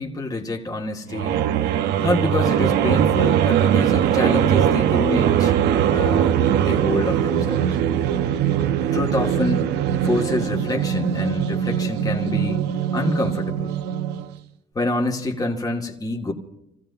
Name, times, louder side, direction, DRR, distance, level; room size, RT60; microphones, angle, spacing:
voice 1, 0.0-1.5 2.0-5.5 5.9-7.7 8.9-9.7 10.0-12.6 12.9-13.7 14.7-16.3, left 2 dB, 20° left, 2.3 m, -26 dB
sound 1, 1.1-14.4, right 9 dB, 85° right, 1.0 m, -21 dB
28.0 x 16.0 x 2.9 m
cardioid pair, 110°, 17 cm